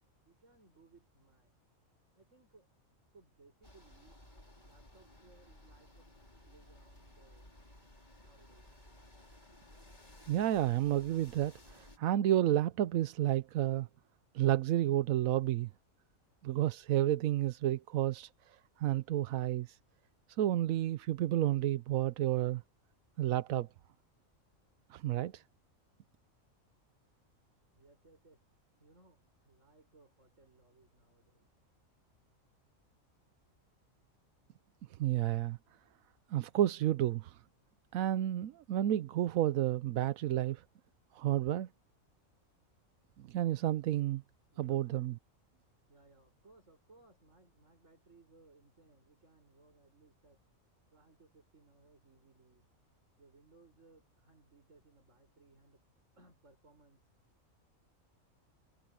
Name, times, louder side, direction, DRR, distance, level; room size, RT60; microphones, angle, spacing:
voice 1, 0.2-1.5 2.1-2.7 3.1-4.2 4.6-6.1 6.4-7.5 8.2-8.7 27.8-28.4 28.8-31.5 44.5-45.2 45.9-50.4 50.9-52.7 53.2-55.8 56.2-57.0, right 3 dB, 60° right, 6.8 m, -64 dB
sound 1, 3.6-12.0, left 1 dB, 35° left, 5.0 m, -57 dB
voice 2, 10.3-13.9 14.3-15.7 16.4-19.8 20.4-22.6 23.2-23.7 24.9-25.4 35.0-35.6 36.3-37.4 37.9-40.6 41.1-41.7 43.2-44.2 44.6-45.2, right 13 dB, 90° right, 1.1 m, -31 dB
omnidirectional pair, 1.4 m